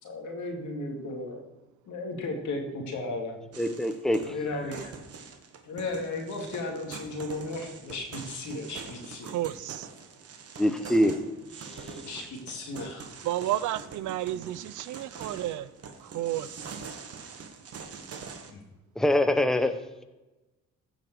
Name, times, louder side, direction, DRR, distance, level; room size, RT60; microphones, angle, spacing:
voice 1, 0.0-1.4 1.9-3.4 4.2-4.9 5.6-9.3 11.6-13.1 16.3-16.4 18.5-18.6, left 2 dB, 75° left, 2.3 m, -35 dB
sound 1, 3.5-18.5, right 5 dB, 50° right, 1.4 m, -44 dB
voice 2, 3.6-4.3 10.6-11.2 19.0-20.0, left 1 dB, ahead, 0.8 m, -24 dB
voice 3, 9.2-9.9 13.2-15.7 16.0-16.5, right 13 dB, 75° right, 0.5 m, -31 dB
14.5 x 5.3 x 4.6 m
cardioid pair, 90°, 30 cm